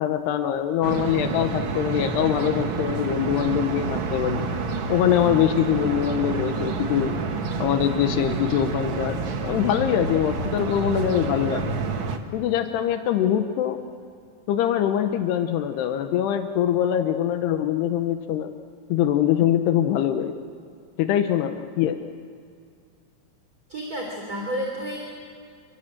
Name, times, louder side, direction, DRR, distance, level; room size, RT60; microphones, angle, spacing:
voice 1, 0.0-4.4 4.9-7.2 7.6-11.6 12.3-13.8 14.5-18.5 18.9-20.3 21.0-22.0, left 10 dB, 80° left, 7 dB, 3.0 m, -23 dB
sound 1, 0.8-12.2, right 4 dB, 70° right, 1.1 m, -28 dB
voice 2, 23.7-25.0, equal, 25° right, 0 dB, 3.5 m, -30 dB
27.5 x 26.0 x 7.7 m, 2.3 s
omnidirectional pair, 4.7 m